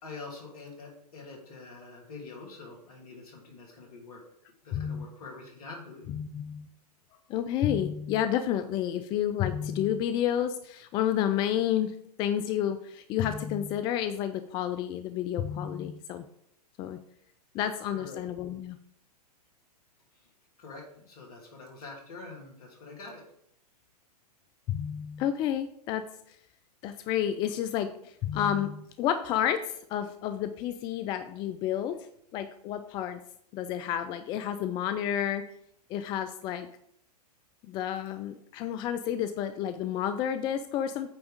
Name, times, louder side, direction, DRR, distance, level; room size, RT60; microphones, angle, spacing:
voice 1, 0.0-4.2 4.6-6.1 17.9-18.2 20.6-23.2, left 3 dB, 65° left, -1 dB, 2.7 m, -45 dB
voice 2, 4.7-5.1 6.1-6.7 7.3-16.3 16.8-17.0 17.5-18.8 24.7-26.4 26.8-32.1 32.3-33.2 33.5-35.5 35.9-36.7 37.6-41.1, left 10 dB, 20° left, 10 dB, 0.3 m, -30 dB
8.8 x 3.5 x 5.0 m, 0.70 s
figure-of-eight pair, 110°, 21 cm